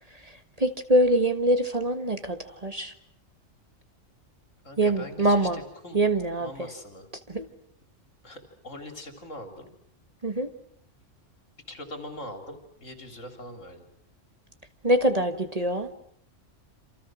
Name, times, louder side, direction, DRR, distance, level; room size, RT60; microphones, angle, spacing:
voice 1, 0.6-2.9 4.8-5.6 5.9-6.7 7.3-7.4 10.2-10.5 14.8-15.9, right 1 dB, 30° right, 8 dB, 1.6 m, -24 dB
voice 2, 4.6-6.0 6.4-7.1 8.2-9.7 11.7-13.9, left 1 dB, 70° left, 5 dB, 4.0 m, -42 dB
28.0 x 27.5 x 6.3 m, 0.66 s
omnidirectional pair, 1.3 m